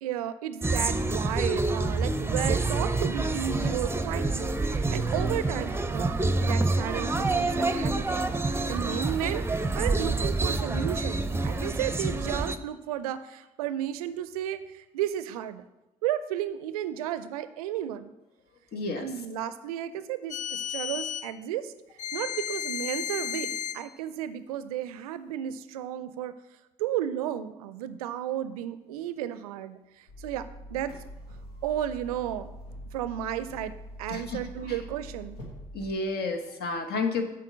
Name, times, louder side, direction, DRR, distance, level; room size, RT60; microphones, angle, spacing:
voice 1, 0.0-6.2 6.4-8.1 8.5-15.6 16.0-18.1 19.0-21.7 22.1-26.3 26.8-30.9 31.6-32.5 32.9-35.4, right 11 dB, 85° right, 13 dB, 0.4 m, -33 dB
sound 1, 0.6-12.6, right 2 dB, 15° right, 0.7 m, -27 dB
voice 2, 18.7-19.1 34.1-34.4 34.7-34.8 35.7-37.2, left 3 dB, 60° left, 6 dB, 1.2 m, -31 dB
sound 2, 20.3-21.3 22.0-23.8, left 10 dB, 40° left, 0.5 m, -33 dB
sound 3, 30.1-35.9, equal, 90° left, 1.2 m, -44 dB
7.8 x 4.6 x 6.1 m, 0.97 s
hypercardioid pair, 45°, 19 cm